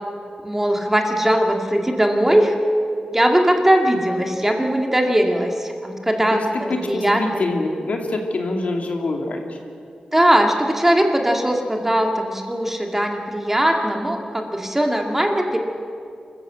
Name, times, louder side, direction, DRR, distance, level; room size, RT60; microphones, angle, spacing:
voice 1, 0.4-2.5 3.1-6.4 6.8-7.4 10.1-15.6, right 1 dB, 15° right, 2 dB, 2.2 m, -19 dB
voice 2, 6.7-9.6, left 2 dB, 65° left, 2 dB, 2.6 m, -25 dB
26.0 x 14.5 x 7.7 m, 2.4 s
wide cardioid pair, 90°, 2 cm